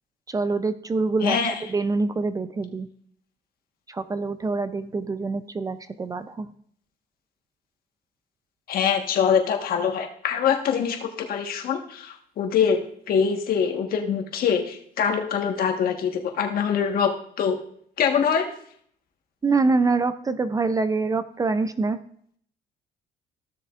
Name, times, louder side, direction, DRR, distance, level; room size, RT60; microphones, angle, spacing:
voice 1, 0.3-1.4 1.7-2.9 3.9-6.5 19.4-22.0, right 3 dB, 20° right, 12 dB, 0.4 m, -25 dB
voice 2, 1.2-1.6 8.7-17.6 18.0-18.5, left 7 dB, 60° left, 4 dB, 1.3 m, -24 dB
15.0 x 6.7 x 2.4 m, 0.63 s
cardioid pair, 110°, 17 cm